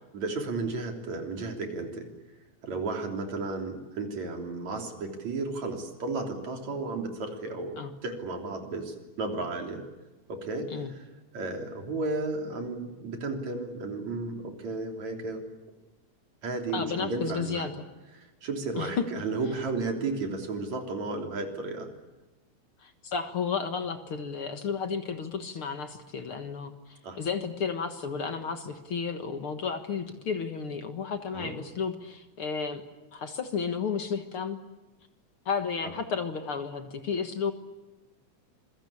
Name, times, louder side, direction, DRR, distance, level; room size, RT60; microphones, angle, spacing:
voice 1, 0.1-2.1 2.6-7.8 8.0-9.8 10.3-11.1 11.3-15.4 16.4-17.7 18.1-21.9 27.0-27.2 31.3-31.5 35.8-35.9, right 3 dB, 70° right, 4 dB, 4.6 m, -33 dB
voice 2, 16.7-17.7 18.8-19.1 22.8-32.8 33.1-34.6 35.5-37.5, left 6 dB, 50° left, 8 dB, 2.1 m, -32 dB
27.0 x 23.0 x 8.6 m, 1.1 s
omnidirectional pair, 3.4 m